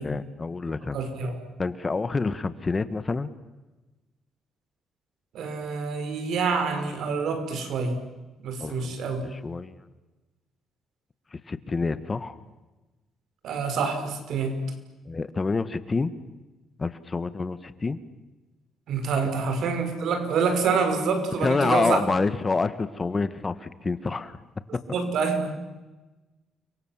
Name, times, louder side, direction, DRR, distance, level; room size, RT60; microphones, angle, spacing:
voice 1, 0.0-1.0 1.6-3.3 8.6-9.0 9.4-9.8 11.3-12.3 15.1-16.1 16.8-18.0 21.4-24.4 24.7-24.8, left 4 dB, 30° left, 13 dB, 1.6 m, -27 dB
voice 2, 0.9-1.4 5.3-8.0 8.4-9.2 13.4-14.7 18.9-22.0 24.9-25.5, right 5 dB, 75° right, 7 dB, 5.5 m, -27 dB
30.0 x 24.0 x 7.6 m, 1.1 s
cardioid pair, 90°, 0 cm